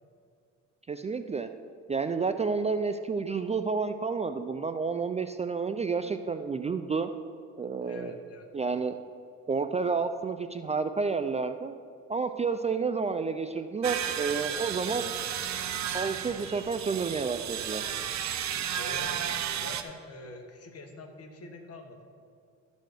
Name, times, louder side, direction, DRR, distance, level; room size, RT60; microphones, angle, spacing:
voice 1, 0.9-1.5 1.9-7.1 7.6-8.1 8.5-9.0 9.5-11.7 12.1-15.1 15.9-17.8, right 5 dB, 20° right, 9 dB, 0.3 m, -30 dB
voice 2, 7.8-8.8 18.7-22.1, left 2 dB, 50° left, 4 dB, 1.5 m, -45 dB
sound 1, 13.8-19.8, right 9 dB, 65° right, 0.7 m, -33 dB
12.5 x 4.2 x 6.5 m, 2.4 s
cardioid pair, 90°, 30 cm